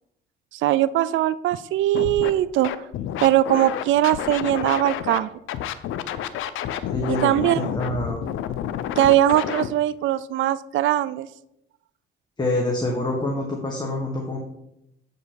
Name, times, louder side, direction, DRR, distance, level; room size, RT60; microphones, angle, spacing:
voice 1, 0.5-2.7 3.2-5.3 7.1-7.7 9.0-11.3, right 13 dB, 75° right, 16 dB, 0.4 m, -21 dB
Scratching (performance technique), 1.9-2.3 2.6-5.2 5.5-9.7, left 10 dB, 85° left, 0.6 m, -29 dB
voice 2, 6.9-8.2 12.4-14.4, left 1 dB, 20° left, 0 dB, 1.6 m, -26 dB
8.0 x 5.4 x 6.3 m, 0.81 s
cardioid pair, 90°, 20 cm